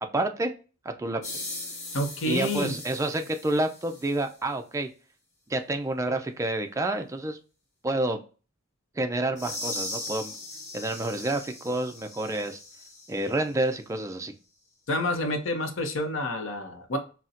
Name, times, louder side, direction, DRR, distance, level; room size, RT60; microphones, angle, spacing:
voice 1, 0.1-0.5 1.0-1.2 2.3-4.9 5.5-7.4 7.8-8.2 9.0-10.3 10.7-12.6 13.1-14.3, right 2 dB, 15° right, 6 dB, 0.4 m, -28 dB
sound 1, 1.2-4.3 9.4-13.4, left 2 dB, 35° left, 1.2 m, -39 dB
voice 2, 1.9-2.8 14.9-17.0, left 1 dB, 65° left, 5 dB, 0.7 m, -28 dB
4.0 x 2.1 x 2.4 m, 0.36 s
head